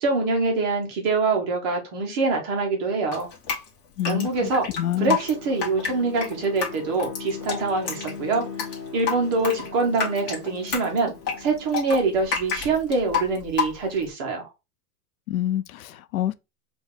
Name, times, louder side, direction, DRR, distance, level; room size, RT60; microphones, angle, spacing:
voice 1, 0.0-3.3 4.1-4.7 5.0-8.5 8.9-14.5, right 3 dB, 15° right, 0.5 m, -24 dB
Drip, 3.1-14.1, left 6 dB, 35° left, 1.3 m, -30 dB
voice 2, 4.0-4.5 4.8-5.2 15.3-16.3, left 12 dB, 60° left, 0.5 m, -27 dB
Bowed string instrument, 4.1-11.8, left 5 dB, 20° left, 0.8 m, -40 dB
4.5 x 2.3 x 3.5 m
supercardioid pair, 165°, 48 cm